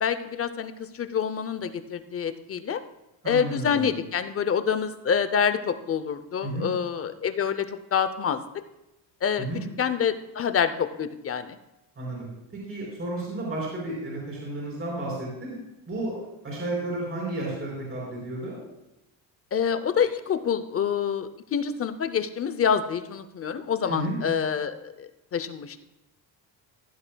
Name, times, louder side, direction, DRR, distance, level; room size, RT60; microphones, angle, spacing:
voice 1, 0.0-2.8 3.3-8.4 9.2-9.5 9.8-11.6 19.5-25.8, left 7 dB, 30° left, 11 dB, 0.6 m, -27 dB
voice 2, 3.2-3.9 6.4-6.7 9.4-9.6 12.0-12.3 12.5-15.5 15.9-16.2 16.4-18.6 23.9-24.2, right 2 dB, 30° right, -5 dB, 4.4 m, -32 dB
15.5 x 11.0 x 2.3 m, 0.94 s
cardioid pair, 150°, 45 cm